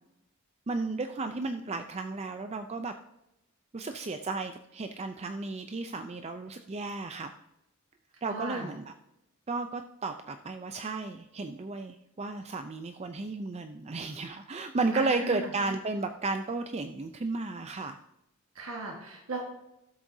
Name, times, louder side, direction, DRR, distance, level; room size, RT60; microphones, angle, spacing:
voice 1, 0.7-2.9 3.7-7.3 8.2-8.9 9.5-18.0, right 3 dB, 30° right, 8 dB, 0.5 m, -33 dB
voice 2, 8.2-8.7 14.9-15.5 18.5-19.4, right 2 dB, 80° right, 0 dB, 1.6 m, -36 dB
13.5 x 7.7 x 2.7 m, 0.87 s
head